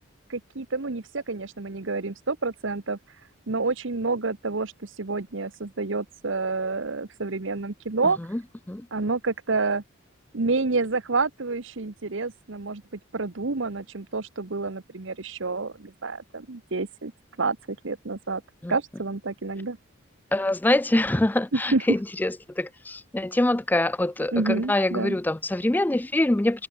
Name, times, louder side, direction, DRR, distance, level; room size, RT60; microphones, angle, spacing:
voice 1, 0.3-3.2 3.5-8.2 8.9-9.8 10.3-12.8 13.1-17.1 17.4-17.6 17.8-18.4 18.7-19.8 21.5-21.9 24.3-25.2, right 3 dB, 65° right, 1.1 m, -28 dB
voice 2, 20.3-26.7, left 1 dB, 10° left, 0.3 m, -24 dB
head